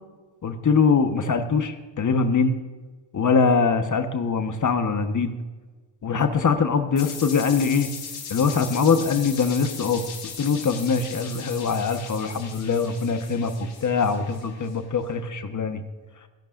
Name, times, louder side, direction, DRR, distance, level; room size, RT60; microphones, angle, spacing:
voice 1, 0.4-2.5 3.1-5.3 6.0-7.9 8.3-10.0 10.4-13.5 13.8-15.8, left 5 dB, 40° left, 7 dB, 1.3 m, -22 dB
sound 1, 7.0-14.7, left 6 dB, 75° left, 4.6 m, -38 dB
26.0 x 11.5 x 2.6 m, 1.3 s
cardioid pair, 80°, 46 cm